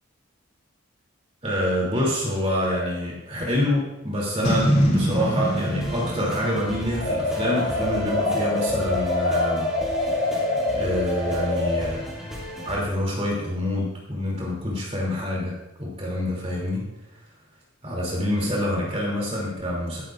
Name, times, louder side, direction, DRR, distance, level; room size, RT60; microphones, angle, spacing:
voice 1, 1.4-9.7 10.1-12.0 12.6-16.9 17.8-20.0, left 1 dB, 30° right, -4 dB, 3.0 m, -27 dB
Boom, 4.4-7.8, equal, 35° left, 3.0 m, -24 dB
sound 1, 5.4-12.8, equal, 5° right, 3.0 m, -35 dB
sound 2, 7.0-11.9, left 2 dB, 90° left, 4.7 m, -25 dB
14.0 x 12.5 x 2.6 m, 0.93 s
head